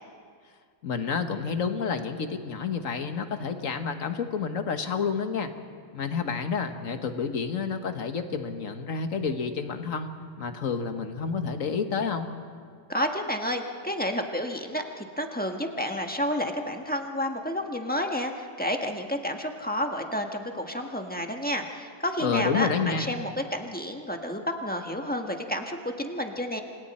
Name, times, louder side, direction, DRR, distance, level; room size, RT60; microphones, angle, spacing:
voice 1, 0.8-5.5 5.9-12.3 22.2-23.1, left 5 dB, 85° left, 7 dB, 1.7 m, -29 dB
voice 2, 12.9-26.6, equal, 5° left, 3 dB, 1.4 m, -30 dB
29.5 x 26.0 x 4.3 m, 2.1 s
omnidirectional pair, 1.3 m